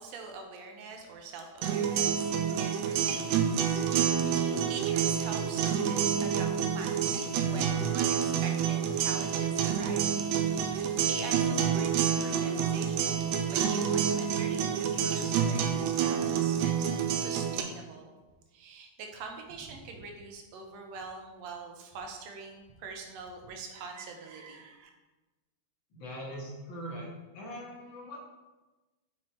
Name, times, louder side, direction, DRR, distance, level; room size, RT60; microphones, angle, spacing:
voice 1, 0.0-3.8 4.1-6.5 6.7-18.1 18.5-24.9, right 4 dB, 70° right, 3 dB, 1.8 m, -44 dB
sound 1, 1.6-17.6, right 8 dB, 90° right, 2.1 m, -28 dB
voice 2, 25.9-27.1 27.3-28.2, equal, 50° left, -3 dB, 1.6 m, -41 dB
6.1 x 4.4 x 4.5 m, 1.2 s
omnidirectional pair, 3.5 m